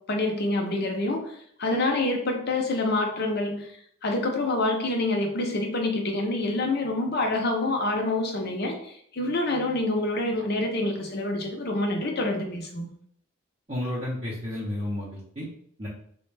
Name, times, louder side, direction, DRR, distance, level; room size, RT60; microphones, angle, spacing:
voice 1, 0.1-3.7 4.0-12.9, left 2 dB, 45° left, 2 dB, 0.6 m, -27 dB
voice 2, 13.7-15.5 15.8-15.9, left 1 dB, 30° right, -7 dB, 0.6 m, -32 dB
3.3 x 2.1 x 3.2 m, 0.66 s
head